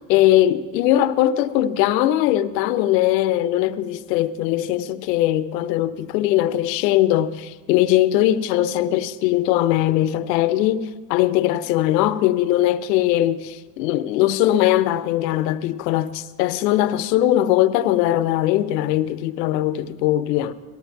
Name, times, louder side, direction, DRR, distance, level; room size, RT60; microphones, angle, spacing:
voice 1, 0.1-13.4 13.8-20.5, left 13 dB, 85° left, 0.8 m, -20 dB
18.5 x 14.5 x 4.6 m
hypercardioid pair, 75°, 49 cm